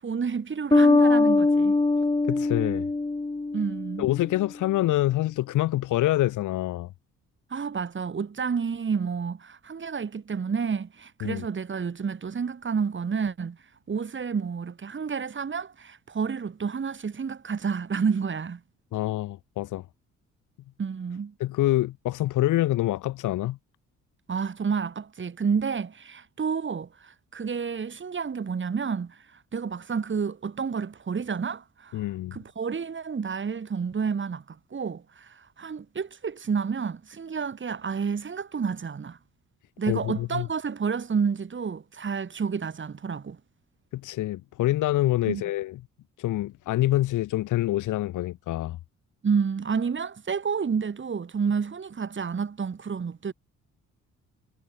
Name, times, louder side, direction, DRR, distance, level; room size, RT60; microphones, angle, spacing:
voice 1, 0.0-1.8 3.5-4.1 7.5-13.6 13.9-18.6 20.8-21.3 24.3-32.0 32.3-39.2 39.8-43.4 45.2-45.4 49.2-53.3, right 6 dB, 40° right, 6.8 m, -30 dB
Bass guitar, 0.7-4.2, left 3 dB, 15° left, 1.9 m, -22 dB
voice 2, 2.3-2.9 4.0-6.9 11.2-11.4 18.9-19.8 21.4-23.6 31.9-32.4 39.9-40.5 43.9-45.7 46.2-48.8, left 15 dB, 80° left, 1.3 m, -26 dB
cardioid pair, 90°, 30 cm